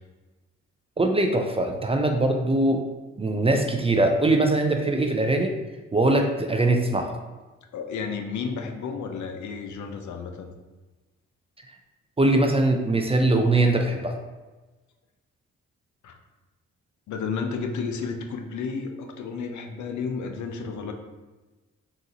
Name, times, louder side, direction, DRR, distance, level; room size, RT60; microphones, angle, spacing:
voice 1, 1.0-2.8 3.2-5.5 5.9-7.1 12.2-14.1, right 2 dB, 20° right, 4 dB, 0.4 m, -22 dB
voice 2, 7.7-10.5 16.0-16.2 17.1-20.9, left 5 dB, 65° left, 4 dB, 0.5 m, -32 dB
3.8 x 2.5 x 2.8 m, 1.2 s
supercardioid pair, 55°, 32 cm